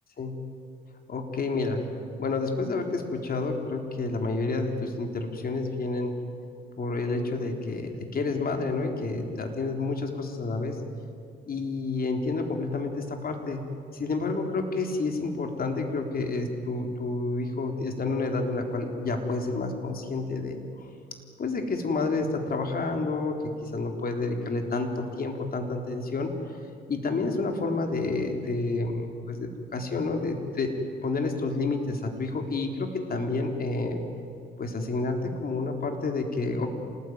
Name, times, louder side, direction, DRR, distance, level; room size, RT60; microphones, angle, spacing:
voice 1, 1.1-1.8 2.2-6.1 6.8-10.8 11.5-13.6 13.9-20.9 21.4-26.3 26.9-30.7 31.0-34.0 34.6-36.7, left 3 dB, 50° left, 4 dB, 3.9 m, -29 dB
27.0 x 19.5 x 9.6 m, 2.5 s
cardioid pair, 90°, 20 cm